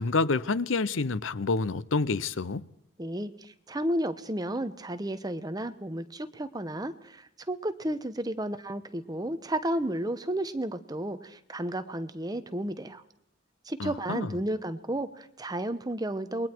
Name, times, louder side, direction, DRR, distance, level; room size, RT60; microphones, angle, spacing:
voice 1, 0.0-2.6 13.8-14.4, left 3 dB, 80° left, 0.7 m, -28 dB
voice 2, 3.0-13.0 13.7-16.5, right 1 dB, 20° right, 1.0 m, -32 dB
28.5 x 21.5 x 4.6 m
head